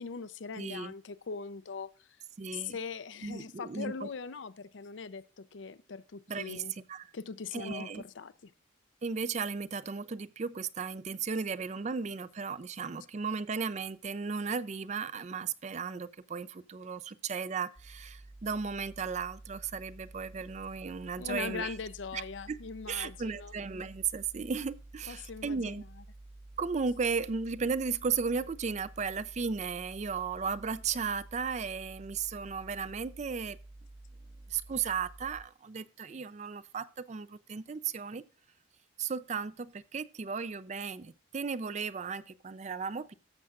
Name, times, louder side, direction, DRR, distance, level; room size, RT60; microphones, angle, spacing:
voice 1, 0.0-2.1 2.5-6.7 7.1-8.5 21.2-23.5 25.1-25.8, left 5 dB, 75° left, 0.6 m, -41 dB
voice 2, 0.6-0.9 2.4-2.8 3.2-4.1 6.3-7.1 7.5-8.0 9.0-21.7 22.1-22.6 22.9-25.8 26.6-33.6 34.5-38.2 39.0-43.1, right 5 dB, 35° right, 0.4 m, -35 dB
sound 1, 17.8-35.4, right 2 dB, 75° right, 2.2 m, -51 dB
13.5 x 7.5 x 2.4 m
head